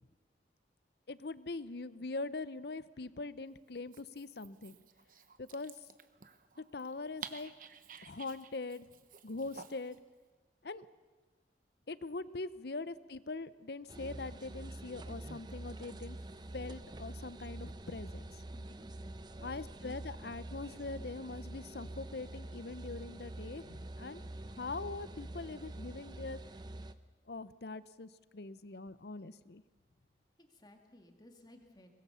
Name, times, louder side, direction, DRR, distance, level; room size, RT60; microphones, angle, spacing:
voice 1, 1.1-4.8 5.4-5.7 6.6-7.5 8.0-8.9 9.2-10.0 10.6-10.9 11.9-16.2 16.5-18.2 19.4-24.2 24.6-26.4 27.3-29.6, left 3 dB, 60° left, 16 dB, 0.7 m, -42 dB
Dog, 3.8-10.0, right 7 dB, 45° right, 1.0 m, -52 dB
sound 1, 13.9-26.9, right 1 dB, 25° right, 0.7 m, -46 dB
voice 2, 18.5-18.9 30.4-31.9, left 1 dB, 20° left, 4 dB, 2.2 m, -58 dB
23.5 x 20.5 x 7.0 m, 1.4 s
head